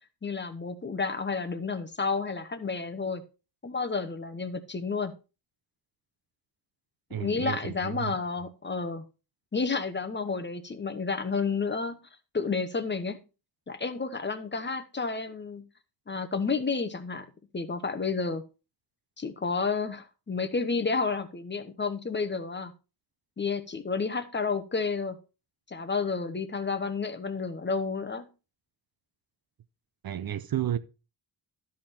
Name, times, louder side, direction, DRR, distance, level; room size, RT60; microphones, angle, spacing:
voice 1, 0.2-3.2 3.6-5.1 7.2-9.0 9.5-12.0 12.3-13.2 13.7-15.6 16.1-17.3 17.5-18.4 19.2-22.7 23.4-25.2 25.7-28.3, left 4 dB, 25° left, 0.9 m, -31 dB
voice 2, 7.1-8.1 30.0-30.8, right 10 dB, 50° right, 0.6 m, -32 dB
12.5 x 5.5 x 4.3 m
wide cardioid pair, 155°, 45 cm